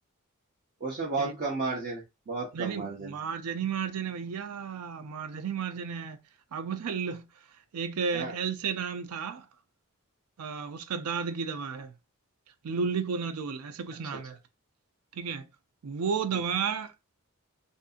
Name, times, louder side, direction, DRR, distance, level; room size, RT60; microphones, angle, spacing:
voice 1, 0.8-3.1 8.1-8.3, right 3 dB, 45° right, 0.6 m, -33 dB
voice 2, 2.5-6.2 6.5-7.2 7.7-9.5 10.4-11.9 12.6-14.4 15.1-15.5 15.8-16.9, right 6 dB, 85° right, 0.4 m, -33 dB
2.6 x 2.5 x 2.4 m
head